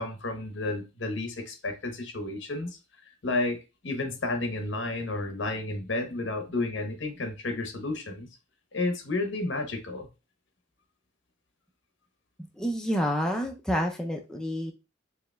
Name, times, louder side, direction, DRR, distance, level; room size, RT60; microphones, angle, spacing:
voice 1, 0.0-8.3 8.7-10.1, left 2 dB, 70° left, 0.9 m, -32 dB
voice 2, 12.6-14.7, equal, 5° left, 0.4 m, -28 dB
4.8 x 3.2 x 2.2 m
head